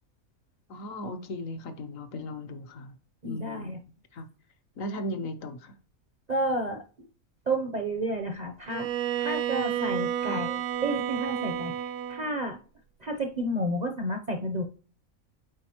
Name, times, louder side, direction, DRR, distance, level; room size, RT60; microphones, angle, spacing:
voice 1, 0.7-3.0 3.2-3.7 4.1-4.3 4.8-5.7 10.2-10.4, left 1 dB, 65° left, 1.2 m, -37 dB
voice 2, 3.2-3.8 6.3-7.1 7.5-8.9 9.2-12.6 13.0-14.6, right 1 dB, 40° right, 0.6 m, -31 dB
Bowed string instrument, 8.7-12.4, right 10 dB, 70° right, 0.9 m, -31 dB
8.6 x 4.0 x 2.9 m
omnidirectional pair, 1.5 m